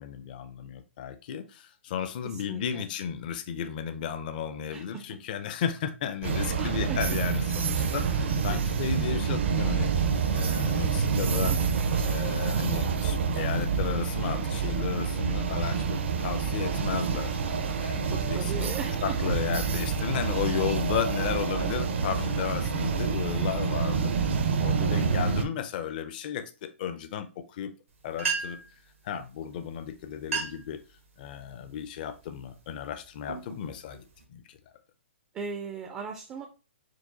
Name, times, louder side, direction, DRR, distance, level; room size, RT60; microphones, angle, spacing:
voice 1, 0.0-9.9 10.3-11.6 12.0-17.4 17.8-24.2 24.6-27.7 28.0-28.6 29.0-30.8 31.2-34.0 34.3-34.4, left 8 dB, 40° left, 0.5 m, -34 dB
voice 2, 2.2-2.8 4.7-5.0 6.6-7.2 8.5-8.6 11.5-11.6 18.1-19.3 25.0-25.2 35.3-36.5, right 5 dB, 15° right, 0.4 m, -38 dB
sound 1, 6.2-25.5, right 6 dB, 60° right, 0.6 m, -27 dB
sound 2, 27.9-28.0 28.2-28.8 29.7-29.8 30.2-30.7 31.2-31.6 32.2-32.5 33.0-34.2, right 5 dB, 90° right, 1.2 m, -34 dB
4.6 x 2.3 x 3.8 m
hypercardioid pair, 150°, 7 cm